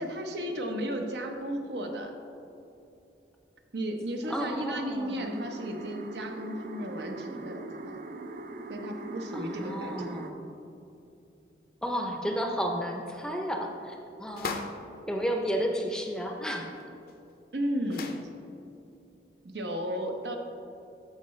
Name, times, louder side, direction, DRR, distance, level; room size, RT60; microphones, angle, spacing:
voice 1, 0.0-2.1 3.7-8.0 8.7-10.1 17.5-18.3 19.4-20.4, equal, 75° right, 3 dB, 0.8 m, -34 dB
voice 2, 4.3-5.5 9.3-10.5 11.8-14.8 15.1-16.7, equal, 5° left, 2 dB, 0.5 m, -32 dB
sound 1, 5.2-10.3, right 2 dB, 50° right, 0.4 m, -41 dB
sound 2, 14.3-14.9 16.8-16.9 17.1-17.2 17.9-18.3, left 4 dB, 55° left, 0.5 m, -37 dB
14.0 x 4.7 x 3.2 m, 2.7 s
head